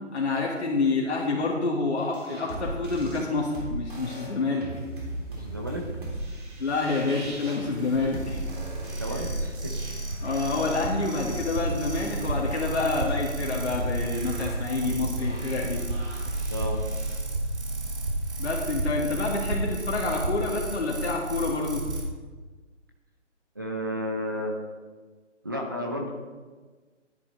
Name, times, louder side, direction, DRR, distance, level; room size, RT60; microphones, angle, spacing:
voice 1, 0.1-4.7 6.6-8.4 10.2-15.8 18.4-21.8, left 3 dB, 65° left, -4 dB, 2.0 m, -28 dB
sound 1, 2.0-17.2, right 1 dB, 40° right, 3.2 m, -38 dB
voice 2, 5.3-5.8 9.0-9.7 16.5-16.8 23.6-24.5 25.4-26.1, equal, 20° right, 0 dB, 0.6 m, -32 dB
sound 2, 6.7-22.0, right 2 dB, 65° right, 3.1 m, -32 dB
10.5 x 10.0 x 4.0 m, 1.4 s
figure-of-eight pair, 160°, 37 cm